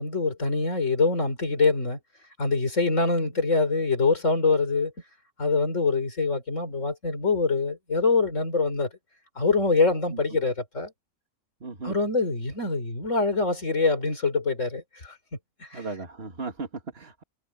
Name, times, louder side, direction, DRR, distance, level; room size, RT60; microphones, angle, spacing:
voice 1, 0.0-2.0 2.4-4.9 5.4-8.9 9.4-10.9 11.8-15.2 15.6-15.8, left 3 dB, 65° left, 4.2 m, -24 dB
voice 2, 11.6-11.9 15.7-17.2, right 3 dB, 50° right, 2.4 m, -36 dB
omnidirectional pair, 1.4 m